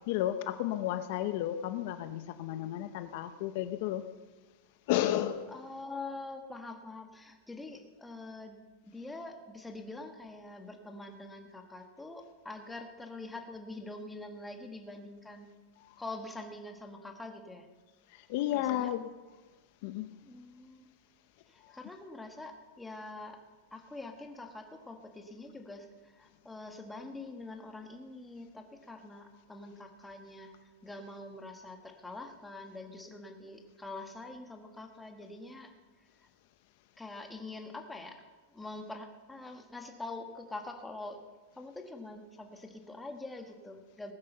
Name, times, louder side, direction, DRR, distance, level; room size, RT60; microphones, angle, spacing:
voice 1, 0.1-4.0 4.9-5.5 15.8-15.9 18.1-19.0 19.8-20.2 21.6-21.7, left 13 dB, 50° left, 10 dB, 0.7 m, -32 dB
voice 2, 5.5-8.6 8.8-15.5 16.0-17.7 18.5-18.9 20.2-20.9 21.5-23.4 23.7-35.7 36.2-36.3 37.0-41.2 41.5-44.1, left 2 dB, 5° left, 4 dB, 1.5 m, -45 dB
19.0 x 10.5 x 6.8 m, 1.3 s
supercardioid pair, 160°, 0 cm